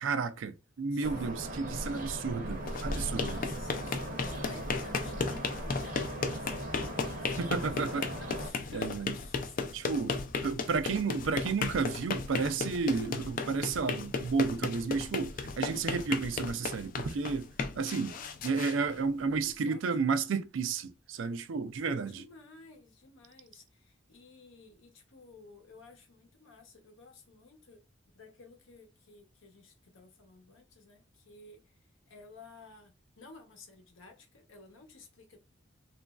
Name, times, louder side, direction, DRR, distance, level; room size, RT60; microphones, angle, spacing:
voice 1, 0.0-3.4 7.4-8.0 8.7-9.1 9.7-10.1 10.4-17.5 17.8-18.1 18.4-22.2, right 4 dB, 75° right, 0.4 m, -32 dB
sound 1, 1.0-8.5, right 1 dB, 40° right, 0.7 m, -39 dB
voice 2, 1.5-2.0 2.8-10.3 18.0-18.8 19.3-20.1 22.0-27.8 28.2-31.6 32.1-35.4, left 3 dB, 80° left, 0.9 m, -54 dB
sound 2, 2.5-19.5, left 4 dB, 45° left, 0.4 m, -36 dB
3.0 x 2.4 x 2.3 m
head